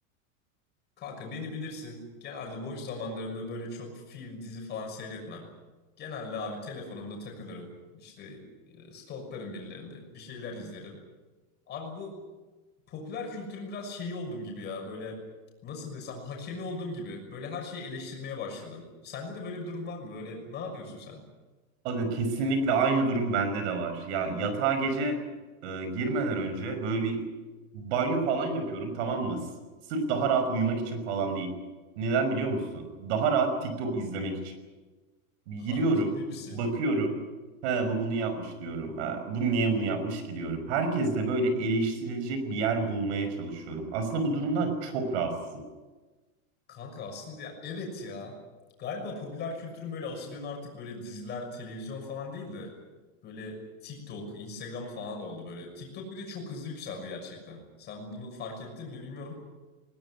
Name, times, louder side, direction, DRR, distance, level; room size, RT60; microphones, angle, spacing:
voice 1, 1.0-5.5 6.0-11.0 11.7-12.2 12.9-15.2 15.6-21.2 35.6-35.8 36.1-36.6 46.7-48.4 48.8-52.7 53.2-59.3, left 3 dB, 25° left, 2 dB, 6.4 m, -39 dB
voice 2, 21.8-25.2 25.6-27.2 27.7-29.4 29.9-31.5 32.0-34.4 35.5-36.2 36.5-37.2 37.6-45.6, right 3 dB, 50° right, 8 dB, 5.7 m, -28 dB
21.0 x 19.5 x 9.9 m, 1.2 s
supercardioid pair, 170°, 43 cm